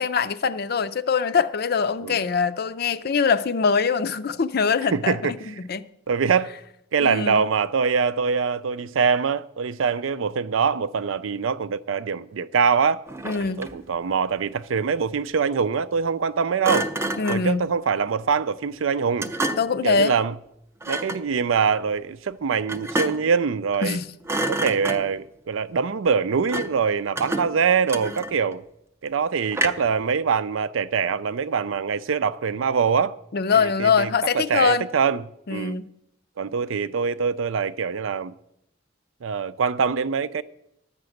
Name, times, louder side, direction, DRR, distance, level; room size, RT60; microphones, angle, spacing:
voice 1, 0.0-5.8 7.0-7.4 13.2-13.6 17.2-17.6 19.6-20.1 23.8-24.1 33.3-34.9 35.5-35.9, left 5 dB, 50° left, 0.5 m, -23 dB
voice 2, 4.9-5.3 6.1-6.5 6.9-13.0 13.6-16.9 17.3-19.3 19.8-20.3 20.9-24.0 24.5-28.6 29.0-33.2 33.5-34.1 34.3-35.2 35.5-35.8 36.4-38.3 39.2-40.4, right 6 dB, 85° right, 0.5 m, -24 dB
Thump thud, 13.1-13.9 16.6-17.5 19.2-19.8 20.8-21.3 22.7-23.4 23.7-24.0 24.2-25.3 26.5-26.8 27.2-28.5 29.5-30.0, right 1 dB, 15° right, 0.5 m, -29 dB
11.5 x 6.0 x 7.8 m
head